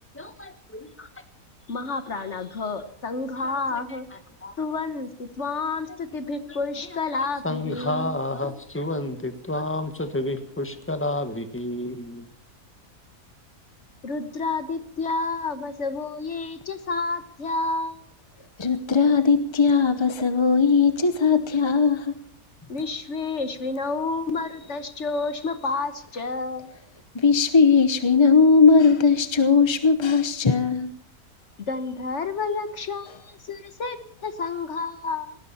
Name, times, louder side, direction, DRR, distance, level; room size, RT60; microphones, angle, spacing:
voice 1, 0.1-1.1 2.1-2.2 3.4-3.8 4.4-4.5 6.5-7.0 7.4-12.2, left 1 dB, 10° left, 1.5 m, -31 dB
voice 2, 1.7-4.1 4.6-8.1 14.0-18.0 22.7-26.7 31.7-35.4, left 3 dB, 55° left, 1.4 m, -30 dB
voice 3, 18.6-22.2 27.1-30.9, left 5 dB, 25° left, 0.7 m, -19 dB
19.0 x 17.0 x 4.3 m
omnidirectional pair, 1.6 m